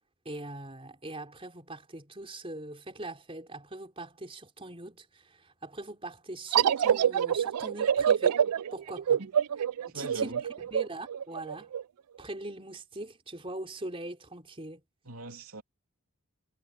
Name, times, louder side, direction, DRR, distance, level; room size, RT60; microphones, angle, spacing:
voice 1, 0.2-8.4 8.7-9.2 9.9-11.7 12.2-14.8, right 2 dB, 25° right, 4.1 m, -41 dB
sound 1, 6.5-11.8, right 8 dB, 90° right, 0.4 m, -26 dB
voice 2, 9.9-10.4 15.0-15.6, right 3 dB, 70° right, 3.2 m, -40 dB
head